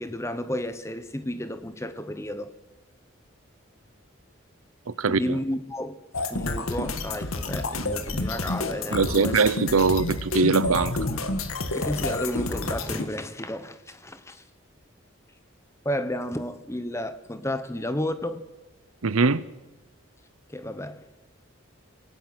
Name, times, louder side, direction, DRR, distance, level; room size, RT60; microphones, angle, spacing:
voice 1, 0.0-2.5 5.0-6.0 6.3-9.4 11.7-14.4 15.8-18.4 20.5-21.1, left 1 dB, 15° left, 1.0 m, -32 dB
voice 2, 5.0-5.3 8.9-11.0 19.0-19.4, right 4 dB, 85° right, 0.8 m, -22 dB
sound 1, 6.1-13.1, left 2 dB, 85° left, 1.8 m, -29 dB
28.5 x 18.0 x 6.2 m
head